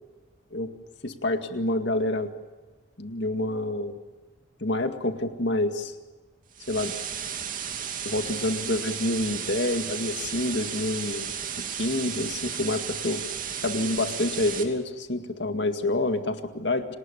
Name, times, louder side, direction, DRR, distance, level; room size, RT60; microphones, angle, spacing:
voice 1, 1.0-2.3 3.0-4.0 4.6-5.9 6.7-6.9 8.0-11.3 11.8-13.2 13.6-16.9, left 2 dB, 60° left, 7 dB, 2.1 m, -27 dB
sound 1, 6.5-14.6, right 8 dB, 45° right, 2.8 m, -34 dB
28.5 x 19.5 x 7.0 m, 1.3 s
head